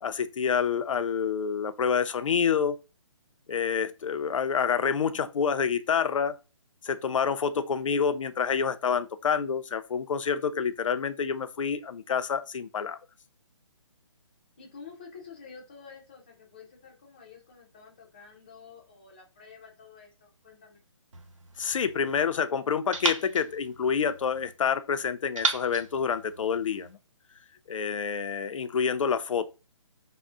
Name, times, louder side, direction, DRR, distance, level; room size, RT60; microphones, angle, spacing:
voice 1, 0.0-2.8 3.5-6.3 6.8-13.0 21.6-27.0 27.7-29.5, left 6 dB, 75° left, 0.4 m, -28 dB
voice 2, 14.6-20.8, left 5 dB, 20° left, 0.4 m, -49 dB
sound 1, 21.1-22.3 22.9-24.5 25.4-26.9, right 3 dB, 75° right, 0.8 m, -35 dB
3.6 x 2.0 x 2.4 m
hypercardioid pair, 170°, 17 cm